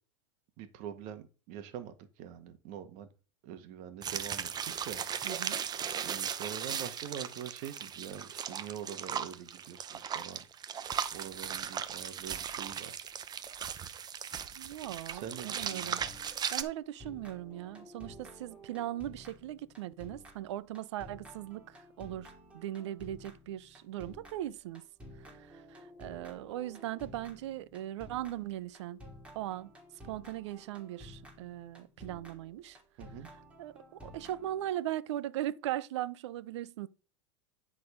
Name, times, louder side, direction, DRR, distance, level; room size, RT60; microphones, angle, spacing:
voice 1, 0.6-3.1 3.4-5.0 6.0-10.4 11.1-13.0 15.1-16.0 33.0-33.3, right 9 dB, 55° right, 1.6 m, -44 dB
sound 1, 4.0-16.6, right 8 dB, 25° right, 0.8 m, -37 dB
voice 2, 5.2-5.6 14.6-16.0 16.5-24.8 25.2-29.0 29.3-29.7 30.0-32.8 33.6-36.9, right 13 dB, 80° right, 0.7 m, -39 dB
sound 2, 15.5-16.7 17.0-34.8, equal, 10° right, 2.8 m, -53 dB
11.0 x 4.2 x 5.1 m
supercardioid pair, 110°, 15 cm